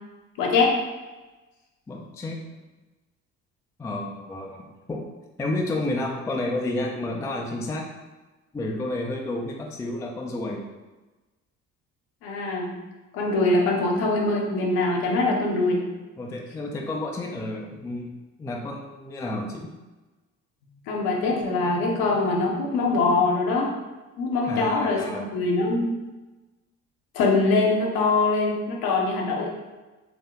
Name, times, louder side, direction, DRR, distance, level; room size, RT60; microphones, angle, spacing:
voice 1, 0.4-0.7 12.2-12.7 13.1-15.8 20.9-23.7 24.2-25.9 27.1-29.5, left 3 dB, 55° left, 0 dB, 0.8 m, -23 dB
voice 2, 1.9-2.4 3.8-5.0 5.4-7.9 8.5-10.6 16.2-18.1 18.4-19.7 24.5-25.3, left 2 dB, 10° left, 0 dB, 0.3 m, -31 dB
3.5 x 2.7 x 3.3 m, 1.2 s
figure-of-eight pair, 45°, 42 cm